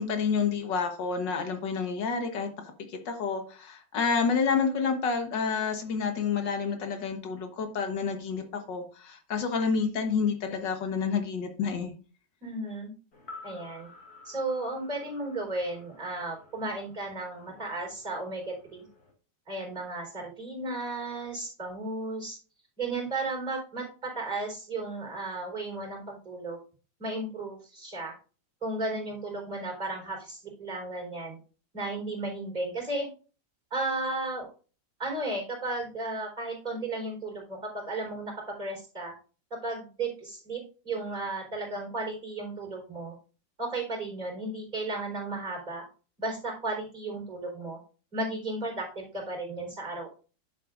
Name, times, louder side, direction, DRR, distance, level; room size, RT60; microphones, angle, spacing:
voice 1, 0.0-2.5 2.9-11.9, left 5 dB, 80° left, 6 dB, 2.0 m, -29 dB
voice 2, 12.4-12.9 13.4-13.9 14.2-18.9 19.5-22.4 22.8-26.6 27.0-28.1 28.6-31.4 31.7-33.1 33.7-34.5 35.0-39.1 39.5-43.1 43.6-45.8 46.2-47.8 48.1-50.1, right 2 dB, 25° right, -1 dB, 4.4 m, -34 dB
glockenspiel E reverb bathroom, 13.1-17.3 17.6-17.7, left 3 dB, 55° left, 2.6 m, -50 dB
10.5 x 7.5 x 2.5 m, 0.36 s
omnidirectional pair, 1.9 m